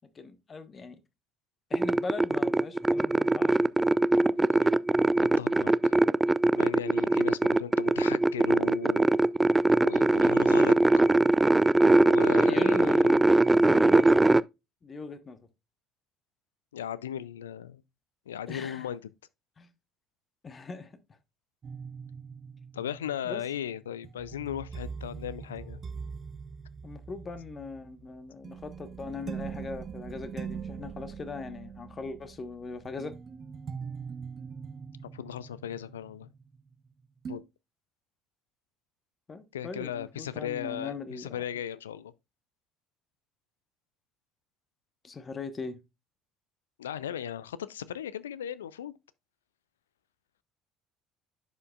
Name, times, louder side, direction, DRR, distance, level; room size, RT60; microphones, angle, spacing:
voice 1, 0.1-1.0 1.7-3.7 12.5-13.2 13.6-14.3 14.8-15.5 18.5-18.9 19.6-19.7 20.4-20.9 23.2-23.4 26.8-33.1 39.3-41.4 45.0-45.8, left 4 dB, 35° left, 1.2 m, -39 dB
sound 1, 1.7-14.4, right 2 dB, 15° right, 0.3 m, -22 dB
voice 2, 5.4-5.9 6.5-9.1 9.8-10.8 12.0-13.2 16.7-17.8 18.3-19.0 22.7-25.8 35.1-36.3 37.3-37.4 39.5-42.1 46.8-48.9, left 10 dB, 80° left, 0.4 m, -37 dB
sound 2, 21.6-36.9 37.2-37.4, right 6 dB, 40° right, 0.8 m, -42 dB
11.0 x 5.0 x 2.4 m
figure-of-eight pair, 55°, 0 cm